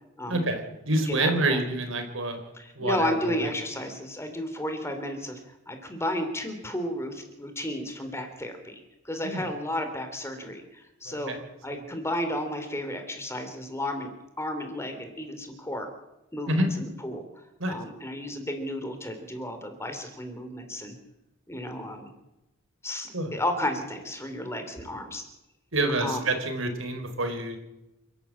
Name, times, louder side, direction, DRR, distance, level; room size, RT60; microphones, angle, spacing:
voice 1, 0.3-2.4 2.8-3.5 9.2-9.4 11.1-11.4 11.7-11.8 16.5-16.7 17.6-17.7 23.1-23.4 25.7-27.6, right 2 dB, 70° right, 6 dB, 4.4 m, -27 dB
voice 2, 1.1-1.6 2.5-5.4 5.7-8.8 9.0-11.3 11.6-14.1 14.4-15.9 16.3-17.2 17.7-20.9 21.5-22.1 22.8-25.2 26.0-26.2, left 1 dB, 15° left, 7 dB, 3.1 m, -33 dB
28.0 x 13.0 x 8.8 m, 0.95 s
head